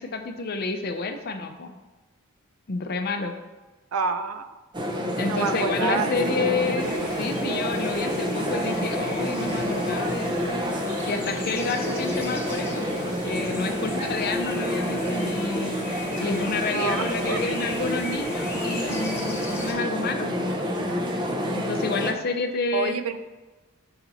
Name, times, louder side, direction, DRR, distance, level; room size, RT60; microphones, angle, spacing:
voice 1, 0.0-1.8 2.7-3.3 5.2-10.6 11.1-15.8 16.2-20.6 21.5-22.9, left 3 dB, 45° left, 6 dB, 0.6 m, -29 dB
voice 2, 3.9-4.6 5.3-6.4 6.7-6.9 16.7-17.5 22.7-23.3, right 5 dB, 80° right, 10 dB, 0.4 m, -29 dB
sound 1, 4.7-22.1, equal, 20° right, 0.5 m, -28 dB
sound 2, 6.8-19.7, left 1 dB, 10° left, 1.0 m, -38 dB
5.8 x 4.2 x 4.0 m, 1.2 s
head